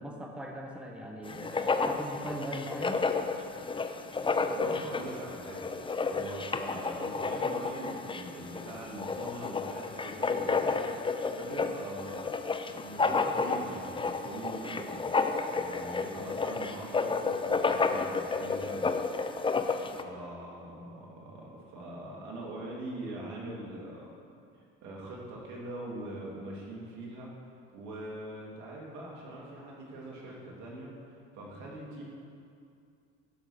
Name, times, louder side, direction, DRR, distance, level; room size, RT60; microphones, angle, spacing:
voice 1, 0.0-3.0, right 1 dB, 5° right, 1 dB, 1.3 m, -40 dB
Writing, 1.3-20.0, left 4 dB, 15° left, 0.6 m, -31 dB
voice 2, 4.5-5.7 6.1-12.3 12.7-15.0 15.5-18.9 20.0-24.1 24.5-27.3 27.7-32.0, right 1 dB, 70° right, -3 dB, 3.0 m, -42 dB
11.5 x 6.2 x 6.6 m, 2.4 s
supercardioid pair, 90°, 30 cm